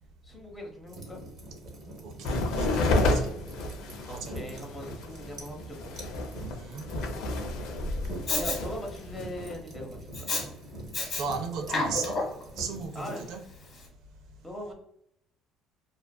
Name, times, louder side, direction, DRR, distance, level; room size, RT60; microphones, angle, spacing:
voice 1, 0.2-1.2 3.9-6.0 8.3-10.3 12.9-13.2 14.4-14.7, left 1 dB, 10° left, 0 dB, 0.7 m, -41 dB
sound 1, 0.9-12.9, right 1 dB, 40° right, 0.9 m, -44 dB
voice 2, 2.0-3.3 4.1-4.3 6.4-6.9 11.2-12.2 12.6-13.4, right 5 dB, 70° right, 4 dB, 0.5 m, -36 dB
sound 2, 2.2-9.5, left 2 dB, 80° left, 0.4 m, -30 dB
Respiratory sounds, 8.3-8.6 10.1-10.4 10.9-11.2 11.6-12.4 13.0-13.1, left 2 dB, 40° left, 0.9 m, -29 dB
2.4 x 2.4 x 2.2 m, 0.73 s
cardioid pair, 115°, 0 cm